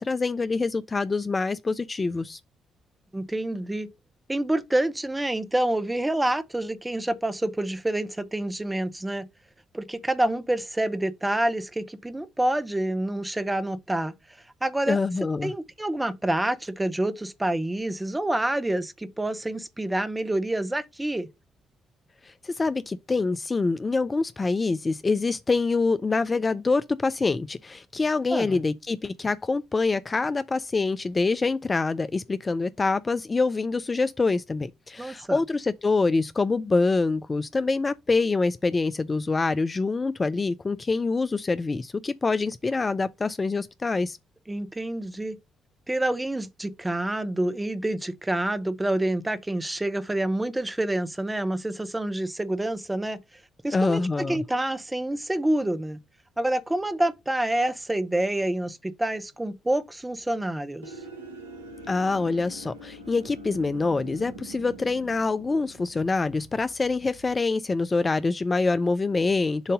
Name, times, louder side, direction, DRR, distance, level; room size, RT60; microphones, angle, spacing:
voice 1, 0.0-2.4 14.9-15.5 22.2-44.2 53.7-54.4 61.9-69.7, left 3 dB, 30° left, 0.4 m, -25 dB
voice 2, 3.1-3.9 4.3-9.2 9.7-14.1 14.6-15.0 15.4-21.3 28.3-28.6 35.0-35.4 44.5-45.4 45.9-53.2 53.6-56.0 56.4-60.9, right 1 dB, 15° right, 1.0 m, -27 dB
sound 1, 60.8-67.4, right 1 dB, 80° right, 0.7 m, -44 dB
7.2 x 2.7 x 5.1 m
figure-of-eight pair, 40°, 0 cm